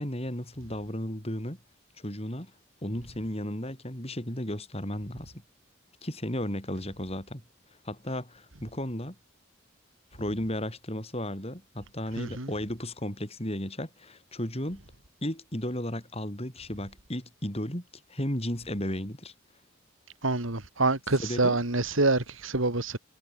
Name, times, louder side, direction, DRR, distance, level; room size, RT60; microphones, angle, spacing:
voice 1, 0.0-1.6 2.0-2.5 2.8-5.3 6.0-7.4 7.8-9.2 10.1-14.8 15.2-19.3 21.2-21.6, left 1 dB, 30° left, 7.2 m, -34 dB
voice 2, 12.2-12.5 20.2-23.0, right 2 dB, 75° right, 2.8 m, -26 dB
head